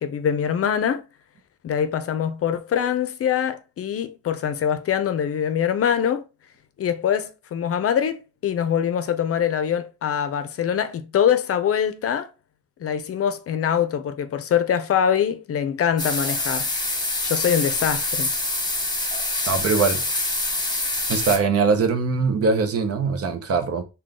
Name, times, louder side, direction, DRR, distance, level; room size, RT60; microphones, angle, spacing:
voice 1, 0.0-1.0 1.6-6.2 6.8-12.3 12.8-16.7 17.2-18.3, left 8 dB, 50° left, 0.6 m, -23 dB
sound 1, 16.0-21.4, left 2 dB, 15° left, 1.1 m, -25 dB
voice 2, 19.5-20.0 21.1-23.8, right 4 dB, 50° right, 0.8 m, -21 dB
3.7 x 2.3 x 3.6 m
cardioid pair, 90°, 30 cm